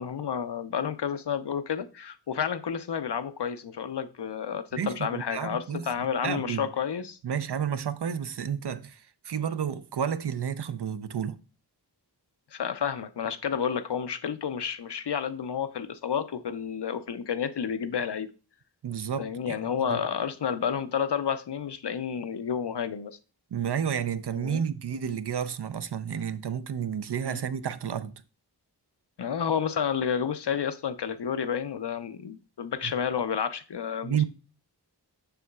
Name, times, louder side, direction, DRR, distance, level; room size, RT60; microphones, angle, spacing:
voice 1, 0.0-7.2 12.5-18.3 19.2-23.2 24.3-24.6 27.2-27.4 29.2-34.2, left 7 dB, 75° left, 0.6 m, -30 dB
voice 2, 4.7-6.7 7.2-11.4 18.8-19.6 19.9-20.0 23.5-28.1 32.8-32.9 34.0-34.2, right 8 dB, 70° right, 0.5 m, -31 dB
6.8 x 6.3 x 2.3 m
wide cardioid pair, 40°, 41 cm